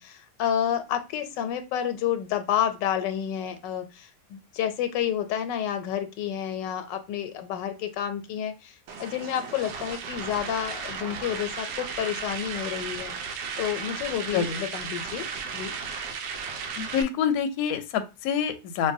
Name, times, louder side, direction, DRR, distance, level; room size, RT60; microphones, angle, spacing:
voice 1, 0.0-8.7 9.0-13.1 13.6-15.3 15.5-15.7, left 10 dB, 85° left, 8 dB, 1.2 m, -30 dB
sound 1, 8.9-17.0, right 5 dB, 85° right, 1.3 m, -35 dB
voice 2, 16.8-18.9, left 8 dB, 70° left, 8 dB, 0.9 m, -26 dB
5.3 x 2.2 x 2.6 m, 0.27 s
omnidirectional pair, 1.9 m